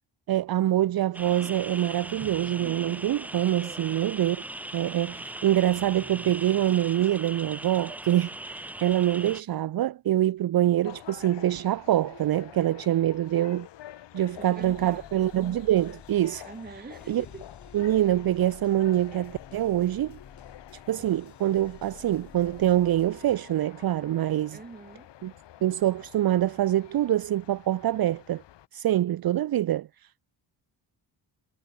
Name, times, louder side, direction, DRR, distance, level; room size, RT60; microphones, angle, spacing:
voice 1, 0.3-4.4 4.7-13.7 14.1-16.5 17.1-17.2 17.7-20.2 20.9-24.6 25.2-25.3 25.6-28.4 28.7-29.9, right 13 dB, 55° right, 0.8 m, -25 dB
sound 1, 1.1-9.4, right 1 dB, 5° right, 0.5 m, -39 dB
voice 2, 3.6-4.0 14.4-15.1 16.4-17.5 24.5-25.1, right 4 dB, 20° right, 3.6 m, -44 dB
sound 2, 10.8-28.7, left 12 dB, 75° left, 2.4 m, -48 dB
sound 3, 14.3-23.4, left 7 dB, 40° left, 3.6 m, -51 dB
cardioid pair, 140°, 42 cm